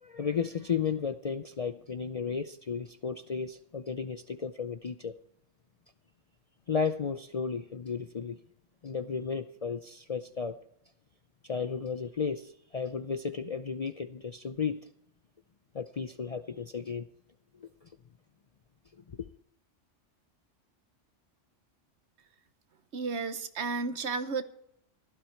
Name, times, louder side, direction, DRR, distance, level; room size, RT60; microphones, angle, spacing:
voice 1, 0.0-5.1 6.7-8.4 8.8-10.6 11.4-14.9 15.7-17.1 17.6-17.7, left 6 dB, 45° left, 9 dB, 0.5 m, -34 dB
voice 2, 22.9-24.4, right 4 dB, 65° right, 11 dB, 1.2 m, -32 dB
16.0 x 12.5 x 4.6 m, 0.72 s
omnidirectional pair, 1.2 m